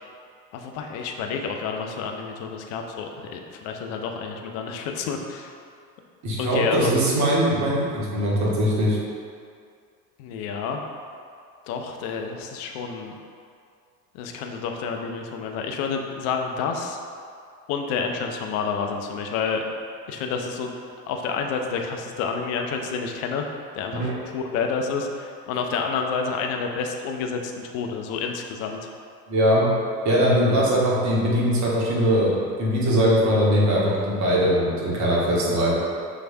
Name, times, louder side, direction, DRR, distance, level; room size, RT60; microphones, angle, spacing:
voice 1, 0.5-5.5 6.4-7.0 10.2-10.8 11.7-13.1 14.1-17.0 17.7-19.6 20.1-20.7 21.1-23.5 23.7-28.8, left 5 dB, 35° left, 3 dB, 0.4 m, -29 dB
voice 2, 6.2-9.0 23.9-24.1 29.3-29.7 30.0-35.7, equal, 35° right, -5 dB, 1.3 m, -21 dB
5.8 x 3.2 x 2.6 m, 2.3 s
figure-of-eight pair, 80°, 49 cm